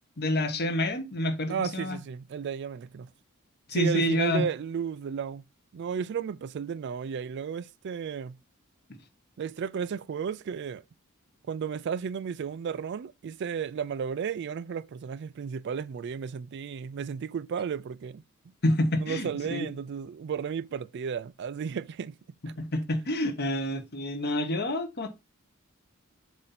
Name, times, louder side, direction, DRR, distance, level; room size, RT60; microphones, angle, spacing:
voice 1, 0.2-2.0 3.7-4.4 18.6-19.7 22.6-25.1, left 1 dB, 50° left, 1.2 m, -28 dB
voice 2, 1.5-3.1 3.7-5.4 5.7-8.4 9.4-10.8 11.5-18.2 19.0-22.2, right 7 dB, 55° right, 0.3 m, -33 dB
7.5 x 2.7 x 5.8 m
head